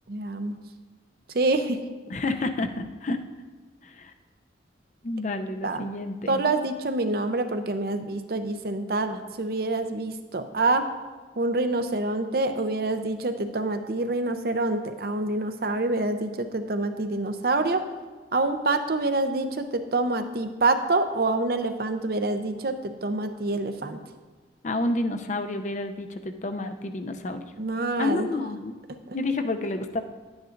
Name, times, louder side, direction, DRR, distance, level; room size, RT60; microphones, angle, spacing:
voice 1, 0.1-0.6 1.3-1.8 5.6-5.9 6.3-10.8 11.4-17.8 18.3-22.8 23.0-24.0 27.6-28.3 29.1-29.2, right 2 dB, 55° right, 8 dB, 0.6 m, -26 dB
voice 2, 2.1-3.2 3.8-4.1 5.0-6.4 24.6-27.4 28.0-28.7 29.1-30.0, left 2 dB, 40° left, 8 dB, 0.5 m, -29 dB
11.5 x 9.4 x 2.6 m, 1.4 s
head